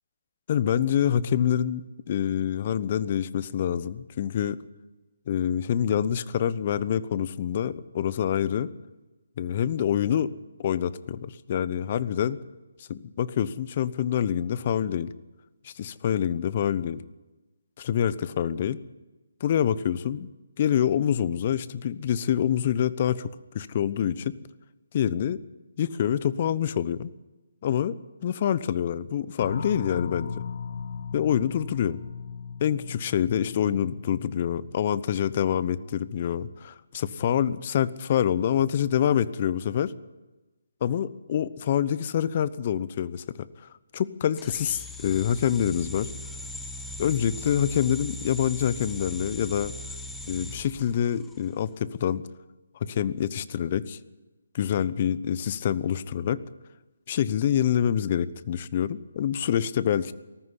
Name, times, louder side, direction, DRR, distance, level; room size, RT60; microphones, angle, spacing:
voice 1, 0.5-4.6 5.3-8.7 9.4-10.3 10.6-12.4 12.9-15.1 15.6-17.0 17.8-18.8 19.4-20.3 20.6-24.3 24.9-25.4 25.8-27.1 27.6-30.4 31.1-32.0 32.6-39.9 40.8-46.1 47.0-49.7 50.3-52.2 52.8-54.0 54.5-56.4 57.1-60.1, left 9 dB, 40° left, 17 dB, 0.9 m, -26 dB
sound 1, 29.4-35.7, left 5 dB, 55° left, 1.5 m, -38 dB
sound 2, 44.4-51.5, left 1 dB, 5° left, 1.5 m, -39 dB
19.0 x 14.0 x 9.9 m, 1.1 s
figure-of-eight pair, 145°, 0 cm